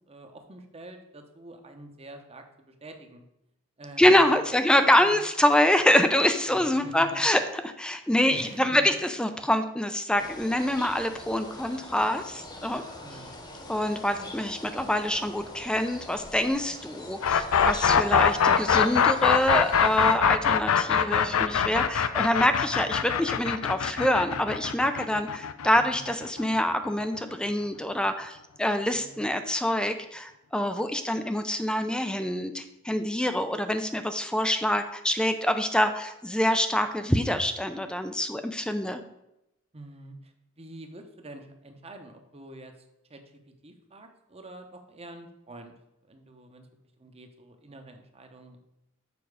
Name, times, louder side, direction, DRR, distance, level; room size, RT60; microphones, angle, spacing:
voice 1, 0.1-3.2 3.8-4.6 4.8-5.2 6.5-7.2 8.3-8.9 13.0-13.4 14.1-14.3 25.8-26.1 28.9-29.3 39.7-42.7 43.1-43.2 43.6-45.7 46.1-46.7 47.0-48.6, right 2 dB, 30° right, 5 dB, 0.9 m, -46 dB
voice 2, 4.0-12.8 13.7-39.0, left 1 dB, 5° left, 8 dB, 0.4 m, -25 dB
sound 1, 10.2-20.2, left 1 dB, 20° left, 1.0 m, -43 dB
sound 2, 17.2-27.1, left 7 dB, 85° left, 0.5 m, -23 dB
7.0 x 5.3 x 4.8 m, 0.85 s
head